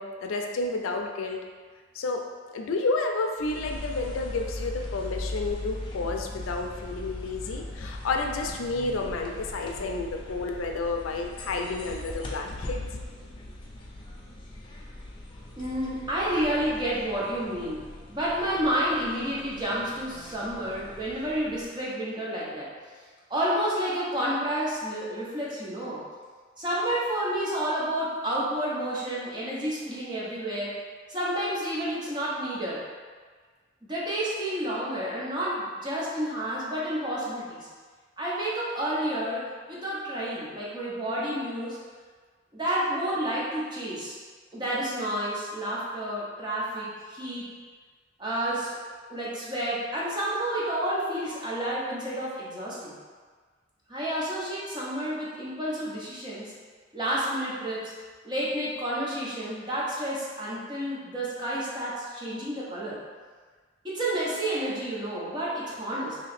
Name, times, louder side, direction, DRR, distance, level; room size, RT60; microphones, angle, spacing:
voice 1, 0.0-1.4 1.9-12.8, left 3 dB, 90° left, 2 dB, 0.4 m, -31 dB
sound 1, 3.4-21.8, left 1 dB, 25° left, 0.4 m, -40 dB
voice 2, 15.5-22.7 23.3-26.0 26.6-30.8 31.1-32.8 33.8-37.7 38.2-41.8 42.5-44.2 44.5-47.5 48.2-48.8 49.1-53.0 53.9-56.5 56.9-57.9 58.2-63.0 63.8-66.2, right 1 dB, 20° right, -6 dB, 0.8 m, -30 dB
3.1 x 2.9 x 4.2 m, 1.5 s
head